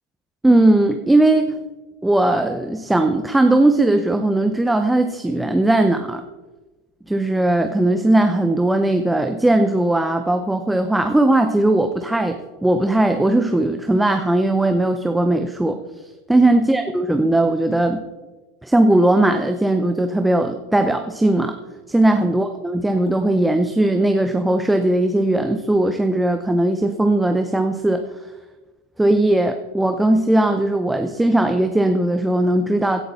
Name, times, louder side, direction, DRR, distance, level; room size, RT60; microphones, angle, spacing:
voice 1, 0.4-1.6 2.0-6.2 7.1-15.8 16.3-18.0 18.6-21.6 21.9-28.1 29.0-33.0, right 1 dB, 5° right, 7 dB, 0.7 m, -18 dB
16.5 x 11.5 x 4.2 m, 1.2 s
supercardioid pair, 155°, 0 cm